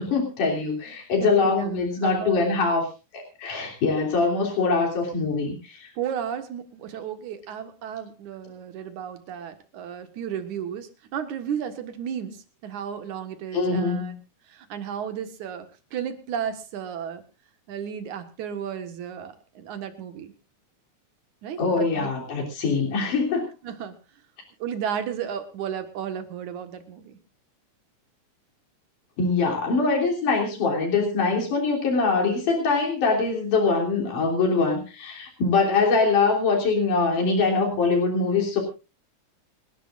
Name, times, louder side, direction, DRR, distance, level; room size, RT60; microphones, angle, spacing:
voice 1, 0.0-2.9 3.1-5.9 13.5-14.2 21.6-23.5 29.2-38.6, left 4 dB, 90° left, 0 dB, 4.9 m, -23 dB
voice 2, 1.2-2.6 6.0-14.1 14.5-17.2 17.7-20.3 21.4-22.1 22.6-22.8 23.6-24.0 24.6-27.2, right 8 dB, 75° right, 9 dB, 3.0 m, -33 dB
29.0 x 11.5 x 2.5 m, 0.29 s
omnidirectional pair, 3.5 m